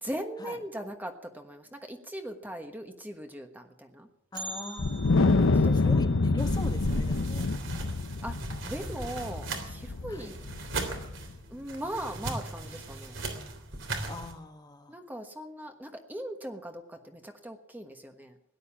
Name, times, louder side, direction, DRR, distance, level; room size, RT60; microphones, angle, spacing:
voice 1, 0.0-4.1 5.3-5.8 8.2-10.4 11.5-13.2 14.9-18.3, right 1 dB, 10° right, 5 dB, 1.3 m, -39 dB
voice 2, 4.3-5.3 5.7-7.4 10.1-10.3 14.0-14.9, left 2 dB, 20° left, 5 dB, 1.4 m, -41 dB
Bell, 4.3-8.4 8.7-8.8 9.3-9.4 10.2-10.3 11.1-11.3 11.7-11.8, right 2 dB, 45° right, 4.0 m, -46 dB
Wind, 4.8-11.3, left 3 dB, 85° left, 0.8 m, -27 dB
sound 1, 6.4-14.3, right 2 dB, 70° right, 3.3 m, -38 dB
17.5 x 11.0 x 7.2 m, 0.77 s
head